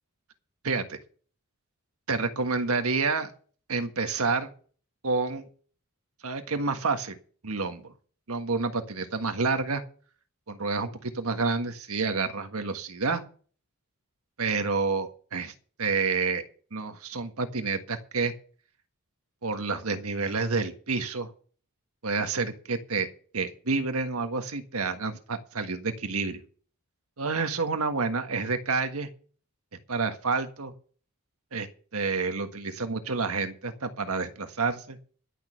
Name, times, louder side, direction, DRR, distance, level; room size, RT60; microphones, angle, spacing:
voice 1, 0.6-1.0 2.1-3.3 3.7-4.5 5.0-5.5 6.2-7.2 7.4-7.9 8.3-9.8 10.5-13.2 14.4-15.5 15.8-16.4 16.7-18.3 19.4-21.3 22.0-23.1 23.3-26.4 27.2-29.1 29.9-30.7 31.5-35.0, right 4 dB, 85° right, 7 dB, 1.6 m, -29 dB
11.5 x 6.5 x 8.9 m, 0.42 s
head